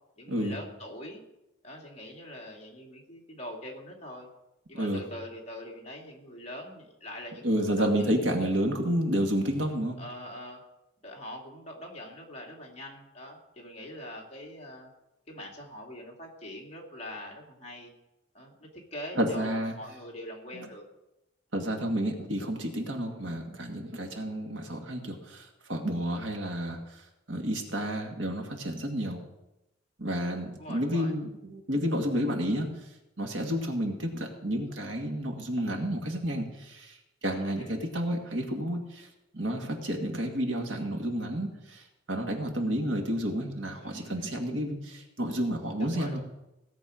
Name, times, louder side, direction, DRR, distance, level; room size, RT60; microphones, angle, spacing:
voice 1, 0.2-1.2 1.6-4.3 4.7-8.0 10.0-10.6 11.0-14.9 15.3-17.9 18.3-20.8 23.2-23.3 30.6-31.1 37.2-37.7 43.8-44.4 45.8-46.2, left 1 dB, 35° left, -2 dB, 2.6 m, -43 dB
voice 2, 4.7-5.1 7.4-10.0 19.2-19.7 20.5-20.7 21.5-27.0 27.3-29.2 30.0-32.7 33.2-39.1 39.3-46.2, equal, 60° right, 2 dB, 1.9 m, -30 dB
17.0 x 7.9 x 5.0 m, 0.94 s
head